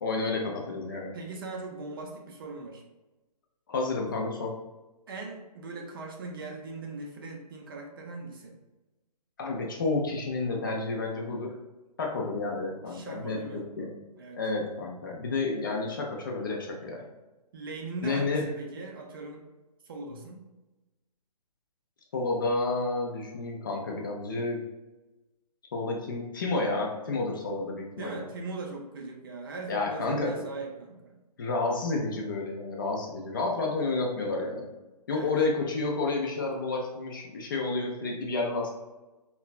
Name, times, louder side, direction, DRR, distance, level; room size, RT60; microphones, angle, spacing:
voice 1, 0.0-1.1 3.7-4.6 9.4-11.6 12.0-13.9 14.4-17.1 18.0-18.4 22.1-24.6 25.7-28.2 29.7-30.5 31.4-34.7 35.1-38.7, left 3 dB, 30° left, -1 dB, 0.4 m, -30 dB
voice 2, 1.1-2.8 5.1-8.6 12.9-13.6 14.2-14.4 17.5-19.4 19.8-20.4 28.0-31.2 35.1-35.3, right 3 dB, 35° right, 1 dB, 0.4 m, -40 dB
3.1 x 2.2 x 2.3 m, 1.1 s
figure-of-eight pair, 140°, 21 cm